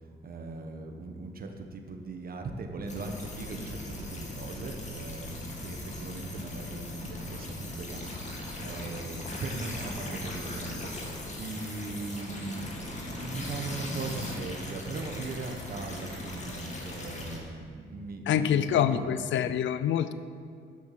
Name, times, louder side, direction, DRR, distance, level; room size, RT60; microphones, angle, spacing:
voice 1, 0.2-10.9 11.2-19.1, right 3 dB, 50° right, 4 dB, 1.4 m, -39 dB
sound 1, 2.9-17.4, left 1 dB, 35° left, 2.2 m, -39 dB
voice 2, 18.3-20.1, left 9 dB, 70° left, 13 dB, 0.6 m, -26 dB
10.5 x 6.4 x 7.5 m, 2.2 s
cardioid pair, 90°, 20 cm